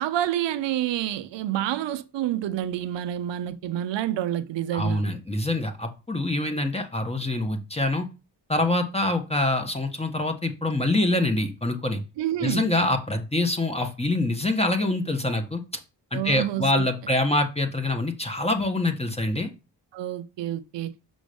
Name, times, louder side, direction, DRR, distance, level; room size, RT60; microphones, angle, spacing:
voice 1, 0.0-5.0 12.2-12.7 16.1-16.8 19.9-20.9, right 12 dB, 90° right, 0.7 m, -28 dB
voice 2, 4.7-8.1 8.5-12.0 12.4-15.6 16.1-19.5, left 2 dB, 15° left, 1.4 m, -25 dB
6.2 x 5.0 x 5.2 m
cardioid pair, 60°, 42 cm